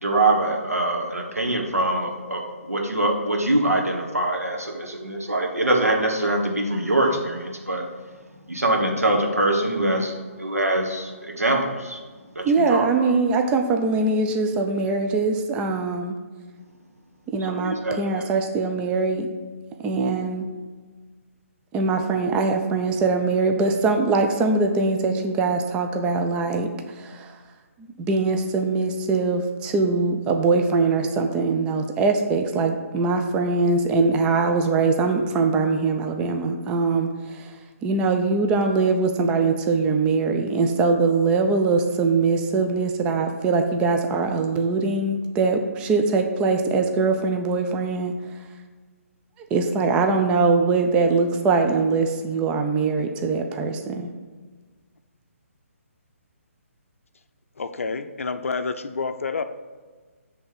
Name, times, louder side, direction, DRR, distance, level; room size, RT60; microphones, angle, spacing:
voice 1, 0.0-8.1 8.5-12.0 12.3-13.1 17.4-18.3, right 1 dB, 85° right, 1 dB, 1.3 m, -24 dB
voice 2, 12.4-16.1 17.3-19.3 19.8-20.5 21.7-27.3 28.1-37.5 37.8-48.1 49.5-54.1, right 4 dB, 15° right, 4 dB, 0.4 m, -22 dB
voice 3, 57.6-59.4, left 4 dB, 65° left, 9 dB, 0.5 m, -28 dB
7.7 x 3.4 x 5.6 m, 1.4 s
figure-of-eight pair, 140°, 8 cm